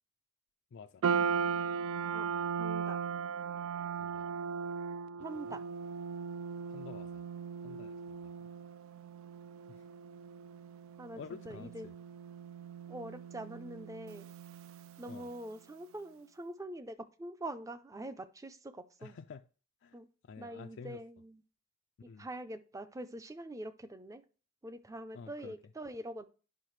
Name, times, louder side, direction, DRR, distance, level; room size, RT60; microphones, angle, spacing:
voice 1, 0.7-1.0 4.0-4.3 5.3-5.6 6.7-7.2 7.6-8.5 9.7-9.9 11.2-11.9 15.1-15.3 19.0-19.4 19.8-20.0 20.2-21.0 22.1-22.3 25.1-25.6, left 5 dB, 60° left, 0.4 m, -50 dB
sound 1, 1.0-15.4, right 6 dB, 75° right, 0.3 m, -38 dB
voice 2, 2.6-3.0 5.2-5.6 11.0-11.9 12.9-14.3 15.0-19.2 19.9-20.1 20.4-21.4 22.0-24.2 24.6-26.3, right 1 dB, 15° right, 0.5 m, -44 dB
10.5 x 5.6 x 3.2 m
head